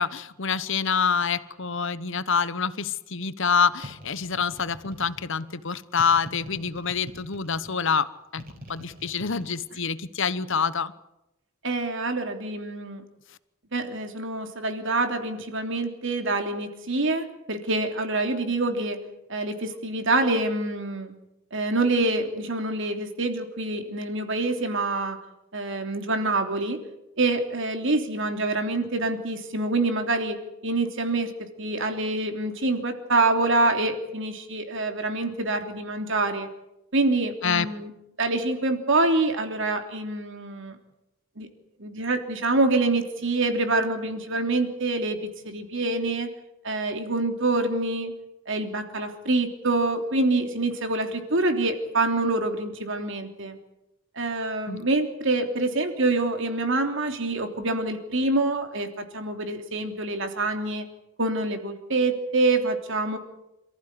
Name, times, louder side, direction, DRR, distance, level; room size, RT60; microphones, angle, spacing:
voice 1, 0.0-8.1 8.3-8.4 8.7-10.9 37.4-37.7 54.7-54.8, left 5 dB, 60° left, 15 dB, 1.1 m, -26 dB
sound 1, 3.8-5.4 6.0-7.7 8.4-9.5, equal, 40° right, 4.5 m, -43 dB
voice 2, 11.6-13.0 13.7-19.0 19.3-21.1 21.5-25.2 25.5-26.8 27.2-30.4 30.6-31.3 31.6-36.5 36.9-37.9 38.2-40.8 41.4-41.5 41.8-45.2 45.4-46.3 46.6-48.1 48.5-53.6 54.1-60.8 61.2-63.2, right 2 dB, 60° right, 6 dB, 3.2 m, -26 dB
28.0 x 15.0 x 9.8 m, 0.91 s
head